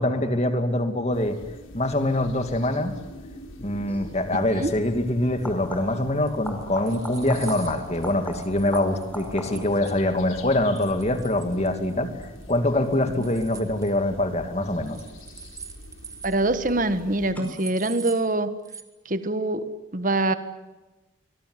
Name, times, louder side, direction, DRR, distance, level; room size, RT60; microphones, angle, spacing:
voice 1, 0.0-1.4 1.7-3.0 3.6-12.1 12.5-15.0, left 1 dB, 35° left, 8 dB, 2.5 m, -24 dB
sound 1, 1.1-17.3, left 1 dB, 85° left, 4.0 m, -44 dB
sound 2, 3.9-4.1 5.3-6.1 6.4-9.8 15.2-15.8 17.3-17.4, left 1 dB, 10° left, 5.2 m, -38 dB
sound 3, 6.3-10.0 10.8-11.9 12.2-12.6 12.8-13.9 14.9-16.4 16.7-16.8 17.0-17.1 17.4-18.3 18.6-18.8, right 6 dB, 15° right, 1.7 m, -42 dB
voice 2, 16.2-18.5 19.1-20.3, right 2 dB, 40° right, 11 dB, 1.5 m, -24 dB
25.0 x 22.0 x 9.7 m, 1.1 s
head